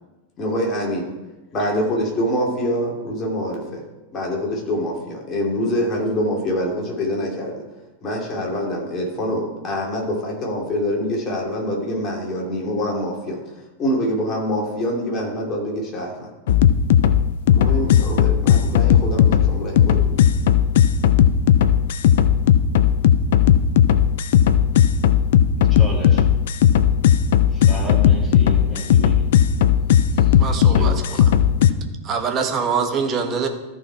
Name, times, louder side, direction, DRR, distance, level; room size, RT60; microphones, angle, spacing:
voice 1, 0.4-1.1 1.5-3.8 4.1-7.6 8.0-13.4 13.8-16.3 17.5-20.2, equal, 30° left, -1 dB, 2.8 m, -25 dB
sound 1, 16.5-31.7, left 10 dB, 55° left, 0.4 m, -16 dB
voice 2, 25.7-26.2 27.5-29.3 30.2-30.3 30.7-31.0, equal, 5° right, -4 dB, 2.3 m, -32 dB
voice 3, 30.4-31.3 32.0-33.5, right 5 dB, 30° right, 5 dB, 1.2 m, -24 dB
13.5 x 4.7 x 4.4 m, 1.1 s
figure-of-eight pair, 90°, 0 cm